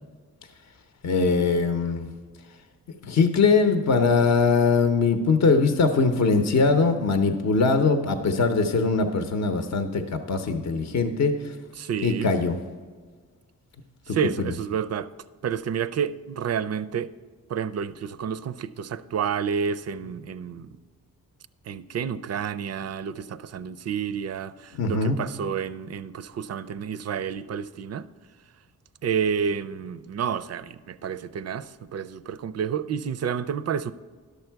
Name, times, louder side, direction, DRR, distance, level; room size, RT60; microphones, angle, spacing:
voice 1, 1.0-2.1 3.0-11.5 12.0-12.6 14.1-14.5 24.7-25.2, left 4 dB, 50° left, 0.7 m, -22 dB
voice 2, 11.8-12.3 14.1-15.1 15.4-17.1 17.5-20.7 21.7-28.1 29.0-33.9, right 7 dB, 45° right, 0.4 m, -30 dB
11.5 x 6.8 x 4.6 m
wide cardioid pair, 105°, 35 cm